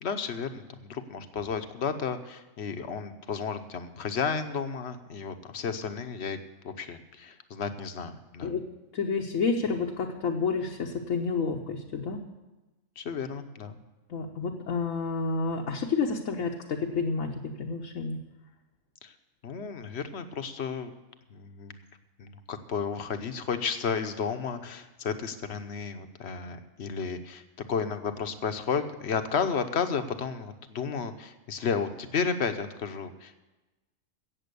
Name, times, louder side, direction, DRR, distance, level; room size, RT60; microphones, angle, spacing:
voice 1, 0.0-6.4 6.6-8.5 13.0-13.8 19.0-19.1 19.4-20.9 21.3-21.8 22.2-27.4 27.7-33.4, left 6 dB, 55° left, 8 dB, 1.1 m, -32 dB
voice 2, 8.9-12.2 14.1-18.2, left 4 dB, 75° left, 0 dB, 1.4 m, -30 dB
16.5 x 7.4 x 6.8 m, 1.1 s
omnidirectional pair, 1.4 m